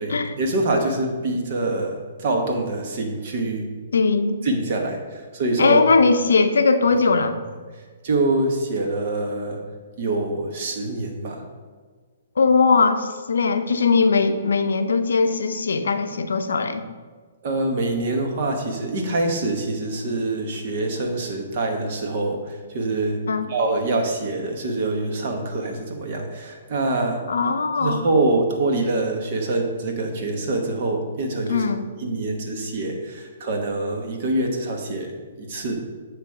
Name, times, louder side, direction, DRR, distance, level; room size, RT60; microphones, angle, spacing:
voice 1, 0.0-3.7 4.4-5.8 8.0-9.6 10.0-11.4 17.4-23.2 23.5-27.2 27.8-31.7 32.0-35.9, right 2 dB, 50° right, 2 dB, 1.2 m, -25 dB
voice 2, 3.9-4.4 5.6-7.3 12.4-16.8 23.3-23.5 27.3-28.0 31.5-31.8, left 4 dB, 75° left, 8 dB, 0.5 m, -19 dB
8.0 x 3.2 x 4.8 m, 1.5 s
hypercardioid pair, 130°, 0 cm